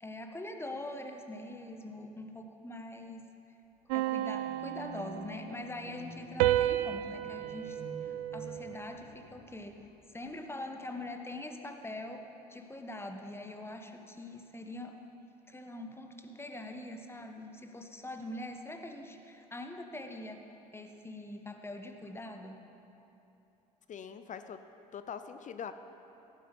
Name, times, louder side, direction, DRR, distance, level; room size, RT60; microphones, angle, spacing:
voice 1, 0.0-3.2 3.9-9.8 10.1-12.2 12.5-15.0 15.5-20.5 20.7-22.6, left 1 dB, 10° left, 5 dB, 1.3 m, -43 dB
sound 1, 3.9-5.7 6.4-9.0, right 14 dB, 70° right, 0.4 m, -32 dB
sound 2, 4.2-10.2, equal, 35° right, 2.8 m, -50 dB
voice 2, 23.9-24.6 24.9-25.7, left 7 dB, 40° left, 10 dB, 0.7 m, -42 dB
16.0 x 9.4 x 5.4 m, 3.0 s
hypercardioid pair, 60°, 20 cm